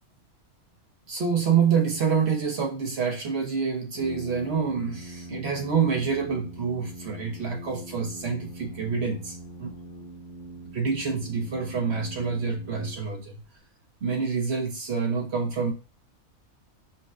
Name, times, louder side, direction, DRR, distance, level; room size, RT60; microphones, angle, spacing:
voice 1, 1.1-9.8 10.7-13.4 14.0-15.7, right 6 dB, 55° right, 1 dB, 0.9 m, -27 dB
Brass instrument, 3.9-13.4, right 1 dB, 45° left, 1.0 m, -42 dB
5.3 x 2.1 x 2.4 m, 0.34 s
omnidirectional pair, 1.5 m